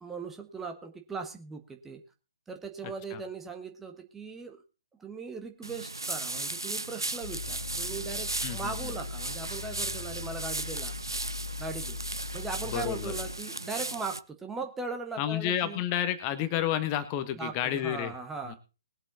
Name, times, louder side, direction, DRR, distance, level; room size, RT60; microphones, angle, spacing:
voice 1, 0.0-2.0 2.5-4.6 5.0-10.9 11.6-12.0 12.3-15.8 17.4-18.6, right 4 dB, 10° right, 5 dB, 1.3 m, -39 dB
sound 1, 5.6-14.2, right 2 dB, 80° right, 0.7 m, -36 dB
sound 2, 7.2-13.3, left 5 dB, 85° left, 2.4 m, -40 dB
voice 2, 8.4-8.7 12.7-13.1 15.2-18.1 18.4-18.6, left 11 dB, 25° left, 11 dB, 1.2 m, -30 dB
20.5 x 7.5 x 4.0 m, 0.32 s
figure-of-eight pair, 130°, 2 cm